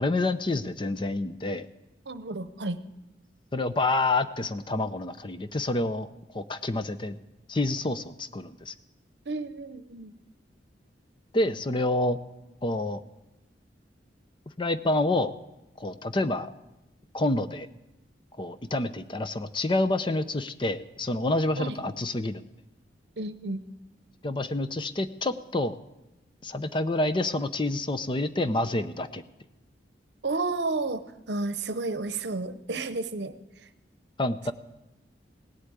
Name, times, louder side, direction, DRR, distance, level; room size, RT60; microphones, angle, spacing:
voice 1, 0.0-1.7 3.5-6.1 6.3-7.2 7.5-8.7 11.3-12.2 12.6-13.0 14.6-15.3 15.8-16.5 17.1-17.7 18.4-22.4 24.2-25.8 26.4-29.2 34.2-34.5, left 2 dB, 25° left, 11 dB, 0.6 m, -28 dB
voice 2, 2.1-2.8 9.3-10.1 21.6-21.8 23.2-23.6 30.2-33.3, right 3 dB, 70° right, 12 dB, 0.8 m, -31 dB
17.5 x 8.2 x 9.0 m, 0.95 s
head